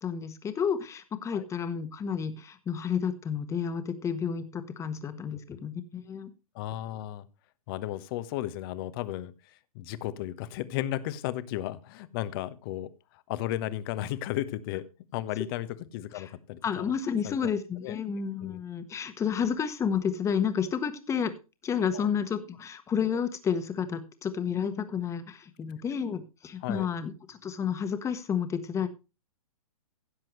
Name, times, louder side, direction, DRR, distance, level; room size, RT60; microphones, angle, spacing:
voice 1, 0.0-6.3 16.1-16.3 16.6-21.3 21.6-28.9, left 7 dB, 15° left, 10 dB, 1.4 m, -31 dB
voice 2, 6.5-7.3 7.7-9.3 9.7-12.9 13.3-14.8 15.1-15.7 15.9-16.8 17.2-17.5 17.8-18.0 18.4-18.6 21.9-22.1 26.6-26.9, left 14 dB, 40° left, 15 dB, 1.1 m, -34 dB
16.0 x 7.5 x 3.2 m, 0.29 s
figure-of-eight pair, 115°, 18 cm